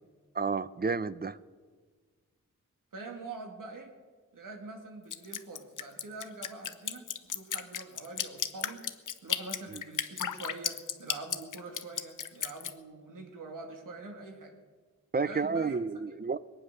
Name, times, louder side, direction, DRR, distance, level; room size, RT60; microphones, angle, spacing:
voice 1, 0.3-1.4 9.7-9.8 15.1-16.4, right 4 dB, 30° right, 16 dB, 0.6 m, -31 dB
voice 2, 2.9-3.9 4.3-8.9 9.2-14.6 15.2-16.1, right 3 dB, 90° right, 4 dB, 2.3 m, -44 dB
Drip, 5.1-12.7, left 8 dB, 75° left, 0.9 m, -34 dB
21.5 x 9.6 x 6.7 m, 1.5 s
cardioid pair, 75°, 31 cm